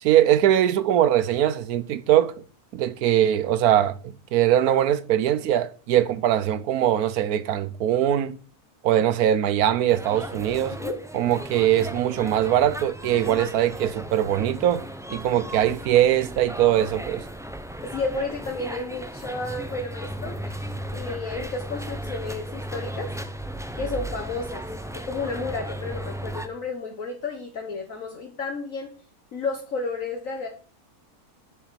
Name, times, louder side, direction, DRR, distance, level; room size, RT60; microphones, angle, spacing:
voice 1, 0.0-2.3 2.7-8.4 8.8-10.8 11.1-14.8 15.1-17.2, right 11 dB, 75° right, 1.2 m, -21 dB
sound 1, 9.9-26.5, right 1 dB, 5° right, 0.4 m, -35 dB
voice 2, 10.7-11.0 17.8-23.1 23.7-24.6 24.9-28.9 29.3-30.5, left 3 dB, 60° left, 1.7 m, -32 dB
7.1 x 7.1 x 7.6 m
omnidirectional pair, 1.6 m